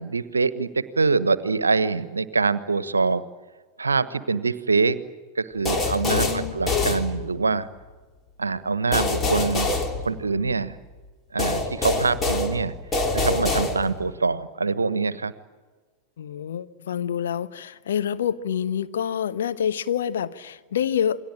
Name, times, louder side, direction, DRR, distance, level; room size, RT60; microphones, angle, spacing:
voice 1, 0.0-3.2 3.8-5.0 5.4-7.7 8.4-9.7 10.0-10.7 11.3-12.7 13.1-15.3, right 4 dB, 75° right, 1.2 m, -24 dB
sound 1, 5.7-7.6 8.9-10.7 11.4-14.2, left 3 dB, 20° left, 3.3 m, -25 dB
voice 2, 6.1-6.6 16.2-21.2, left 9 dB, 60° left, 1.2 m, -27 dB
28.0 x 22.0 x 8.9 m
figure-of-eight pair, 90°, 0 cm